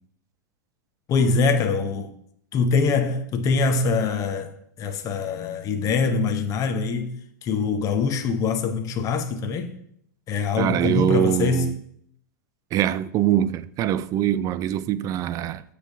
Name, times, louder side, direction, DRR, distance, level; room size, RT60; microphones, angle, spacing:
voice 1, 1.1-2.1 2.5-7.1 7.4-9.7 10.3-11.7, left 4 dB, 35° left, 0.7 m, -23 dB
voice 2, 10.6-11.8 12.7-15.6, right 11 dB, 35° right, 0.4 m, -23 dB
7.3 x 3.4 x 6.3 m
hypercardioid pair, 110°, 10 cm